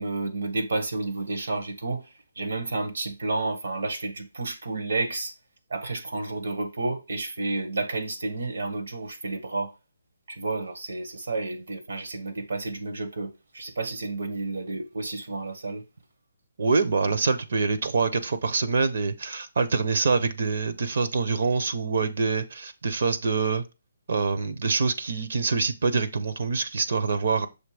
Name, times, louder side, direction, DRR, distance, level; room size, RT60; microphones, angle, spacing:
voice 1, 0.0-2.1 2.3-5.3 5.7-9.7 10.3-15.8, right 2 dB, 75° right, 1.5 m, -31 dB
voice 2, 16.6-23.6 24.1-27.5, right 4 dB, 60° right, 0.8 m, -25 dB
6.5 x 3.1 x 4.9 m
hypercardioid pair, 165°, 0 cm